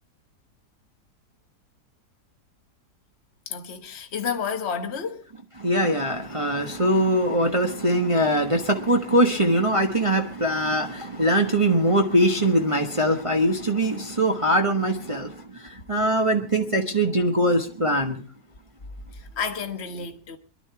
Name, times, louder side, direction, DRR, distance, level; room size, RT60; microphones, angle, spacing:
voice 1, 3.5-5.3 19.1-20.4, left 6 dB, 40° left, 1.6 m, -31 dB
voice 2, 5.6-18.2, right 1 dB, 20° right, 1.3 m, -22 dB
23.0 x 12.0 x 4.7 m
omnidirectional pair, 1.8 m